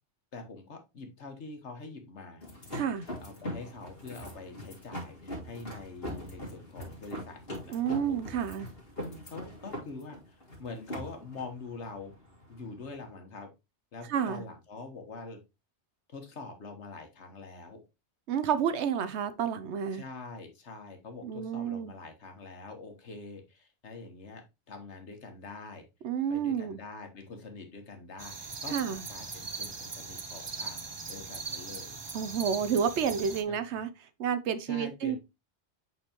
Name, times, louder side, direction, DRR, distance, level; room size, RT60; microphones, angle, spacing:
voice 1, 0.3-2.5 3.2-8.2 9.0-12.1 12.5-13.5 13.9-15.4 16.1-17.8 19.9-25.9 26.3-30.8 31.1-32.0 33.5-33.6 34.7-35.2, left 3 dB, 85° left, 1.6 m, -45 dB
sound 1, 2.4-13.1, left 1 dB, 60° left, 2.2 m, -42 dB
voice 2, 2.7-3.0 7.7-8.7 14.1-14.4 18.3-20.0 21.2-21.9 26.0-26.8 28.7-29.0 32.1-33.9 34.2-35.2, right 7 dB, 85° right, 1.0 m, -30 dB
sound 2, 28.2-33.4, right 4 dB, 30° right, 0.5 m, -40 dB
7.7 x 4.1 x 2.9 m
omnidirectional pair, 1.1 m